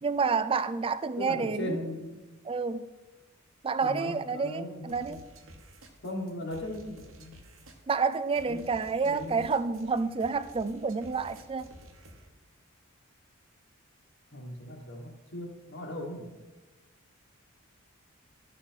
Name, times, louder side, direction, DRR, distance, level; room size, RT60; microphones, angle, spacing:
voice 1, 0.0-1.8 2.4-2.9 3.6-5.2 7.9-11.7, right 5 dB, 25° right, 14 dB, 0.3 m, -29 dB
voice 2, 1.2-2.2 3.8-5.2 6.0-7.4 8.4-8.6 9.0-9.5 14.3-16.3, left 1 dB, 55° left, 0 dB, 1.4 m, -38 dB
sound 1, 4.9-12.3, right 1 dB, 65° right, 1.2 m, -52 dB
12.0 x 5.6 x 4.4 m, 1.1 s
head